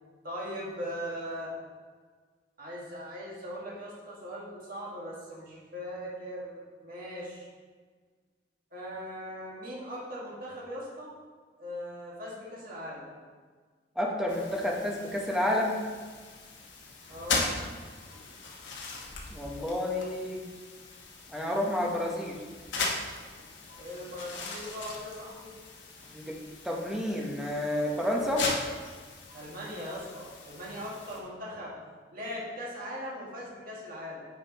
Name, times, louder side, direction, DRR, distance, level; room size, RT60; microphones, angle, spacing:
voice 1, 0.2-1.5 2.6-7.5 8.7-11.1 11.6-13.1 17.1-17.5 23.8-25.5 29.3-31.7 32.1-34.3, equal, 50° right, -5 dB, 1.8 m, -39 dB
voice 2, 14.0-15.8 19.3-20.4 21.3-22.4 26.1-26.4 26.6-28.5, left 1 dB, 5° right, -2 dB, 0.9 m, -30 dB
sound 1, 14.3-31.2, left 3 dB, 80° left, 1.1 m, -39 dB
8.8 x 5.2 x 3.0 m, 1.5 s
head